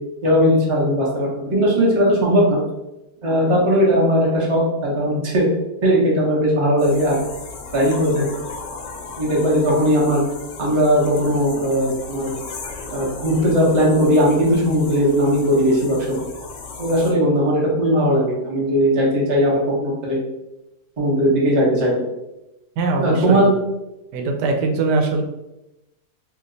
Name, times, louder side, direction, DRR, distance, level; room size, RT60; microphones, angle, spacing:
voice 1, 0.2-2.6 3.2-5.5 5.8-7.2 7.7-8.3 9.2-10.2 10.6-12.3 12.9-16.2 16.8-20.2 21.0-22.1 23.0-23.6, equal, 35° right, -4 dB, 0.5 m, -18 dB
sound 1, 6.8-17.1, left 4 dB, 70° left, 0.7 m, -36 dB
voice 2, 22.8-23.5 24.1-25.2, right 3 dB, 85° right, 2 dB, 1.2 m, -21 dB
2.8 x 2.2 x 3.8 m, 0.95 s
omnidirectional pair, 1.8 m